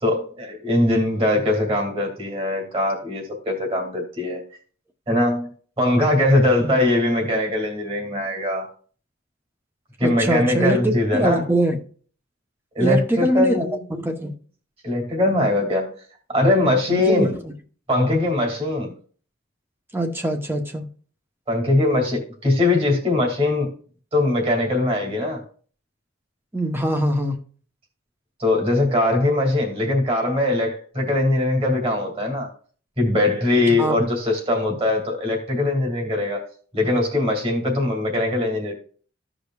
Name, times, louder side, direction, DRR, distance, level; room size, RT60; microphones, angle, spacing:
voice 1, 0.0-4.4 5.1-5.5 5.8-8.7 10.0-11.5 12.7-13.8 14.8-15.9 16.3-17.3 17.9-18.9 21.5-23.7 24.1-25.4 28.4-32.5 33.0-38.7, left 2 dB, 30° right, 2.4 m, -21 dB
voice 2, 10.0-10.8 11.1-11.8 12.8-14.3 16.9-17.4 19.9-20.9 26.5-27.4 33.8-34.0, right 1 dB, 10° right, 0.9 m, -23 dB
15.0 x 5.0 x 2.4 m
head